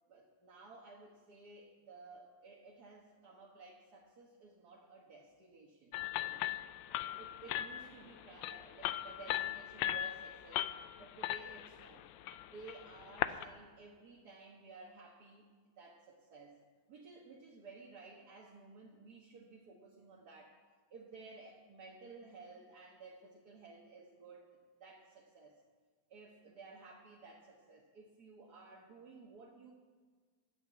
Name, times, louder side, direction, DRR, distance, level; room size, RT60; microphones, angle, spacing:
voice 1, 0.1-6.5 7.2-10.6 11.0-12.1 12.5-15.5 15.8-16.6 16.9-20.6 20.9-25.6 26.1-29.7, right 3 dB, 55° right, -1 dB, 1.8 m, -55 dB
sound 1, 5.9-13.4, left 13 dB, 85° left, 1.3 m, -39 dB
10.5 x 8.9 x 8.2 m, 1.5 s
omnidirectional pair, 2.1 m